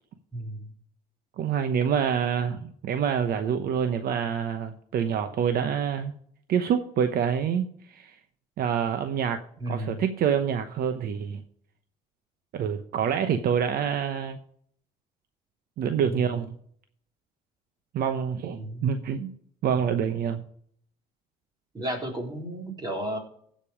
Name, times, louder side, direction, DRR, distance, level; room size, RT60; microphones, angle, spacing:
voice 1, 0.3-0.7 9.6-10.0 16.1-16.2 18.5-18.9 21.7-23.2, right 1 dB, 25° right, 1 dB, 3.4 m, -33 dB
voice 2, 1.4-6.1 6.5-8.1 8.6-9.4 9.7-11.4 12.5-14.4 15.8-16.6 17.9-19.3 19.6-20.4, right 8 dB, 65° right, 8 dB, 0.9 m, -26 dB
15.5 x 5.3 x 5.1 m, 0.62 s
cardioid pair, 110°, 17 cm